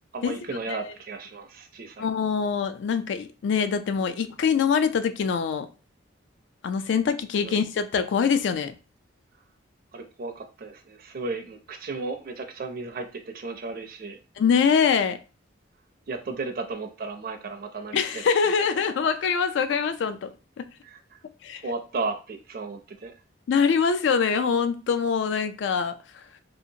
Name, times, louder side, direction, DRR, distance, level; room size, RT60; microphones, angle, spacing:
voice 1, 0.1-2.1 7.4-7.6 9.9-14.2 16.1-18.5 20.8-21.2 21.6-23.2, right 3 dB, 50° right, 0.4 m, -35 dB
voice 2, 2.0-5.7 6.6-8.7 14.4-15.2 17.9-20.3 20.6-20.7 21.4-21.6 23.5-25.9, left 6 dB, 65° left, 0.3 m, -24 dB
2.8 x 2.4 x 2.7 m
head